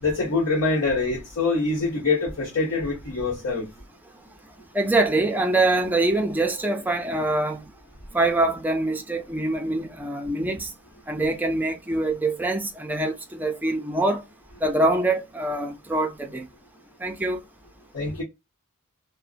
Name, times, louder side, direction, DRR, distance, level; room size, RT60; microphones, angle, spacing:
voice 1, 0.0-3.7 17.9-18.2, left 3 dB, 70° left, 1.0 m, -24 dB
voice 2, 4.7-7.6 8.1-10.7 11.1-14.2 14.6-16.4 17.0-17.4, right 2 dB, 10° right, 0.4 m, -24 dB
2.6 x 2.0 x 2.4 m
head